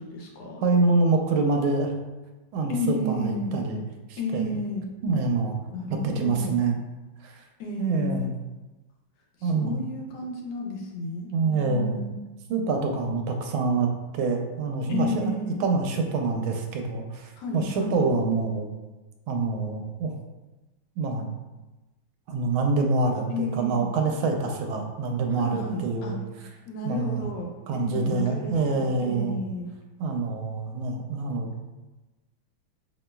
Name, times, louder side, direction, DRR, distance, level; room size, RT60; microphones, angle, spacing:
voice 1, 0.0-0.6 2.7-3.5 4.2-4.8 5.7-6.6 7.6-8.3 9.4-12.1 14.9-15.6 17.4-18.0 23.3-23.9 25.3-26.1 26.7-29.7, left 2 dB, 70° left, -1 dB, 1.2 m, -32 dB
voice 2, 0.6-1.9 2.5-3.8 4.1-4.6 5.0-5.6 5.9-6.8 7.2-7.4 7.8-8.3 9.4-9.7 11.3-12.0 12.5-15.3 15.6-18.7 19.3-20.1 21.0-21.3 22.3-26.2 26.8-27.2 27.7-29.4 30.0-31.5, right 3 dB, 85° right, 3 dB, 1.4 m, -26 dB
5.3 x 2.9 x 2.2 m, 1.1 s
omnidirectional pair, 2.2 m